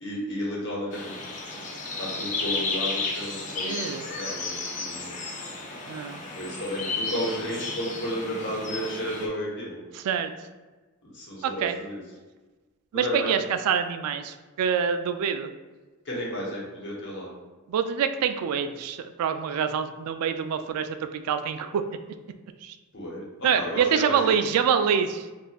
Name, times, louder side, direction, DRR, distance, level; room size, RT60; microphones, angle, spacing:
voice 1, 0.0-1.1 2.0-5.2 6.3-9.8 11.1-12.0 12.9-13.3 16.0-17.3 22.9-24.2, equal, 55° left, -4 dB, 1.0 m, -33 dB
sound 1, 0.9-9.3, left 3 dB, 35° left, 0.4 m, -33 dB
voice 2, 3.6-4.0 5.9-6.2 9.9-10.3 11.4-11.8 12.9-15.5 17.7-21.8 22.6-22.7 23.4-25.3, right 7 dB, 85° right, 11 dB, 0.3 m, -26 dB
4.3 x 2.4 x 2.3 m, 1.3 s
head